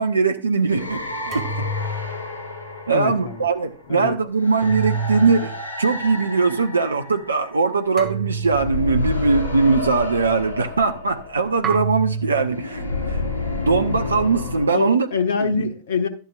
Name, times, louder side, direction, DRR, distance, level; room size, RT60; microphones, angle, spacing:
voice 1, 0.0-1.7 2.9-5.5 5.8-13.2 13.7-15.1 15.4-15.7, right 4 dB, 75° right, 0.8 m, -21 dB
sound 1, 0.7-8.0 8.4-14.7, left 2 dB, 75° left, 4.7 m, -30 dB
sound 2, 1.3-2.7 4.6-5.7 8.0-9.0 11.6-12.7, right 5 dB, 25° right, 1.9 m, -28 dB
voice 2, 2.9-3.5 3.9-4.2 14.7-16.1, left 5 dB, 60° left, 1.2 m, -24 dB
11.5 x 11.5 x 2.4 m
figure-of-eight pair, 90°, 0 cm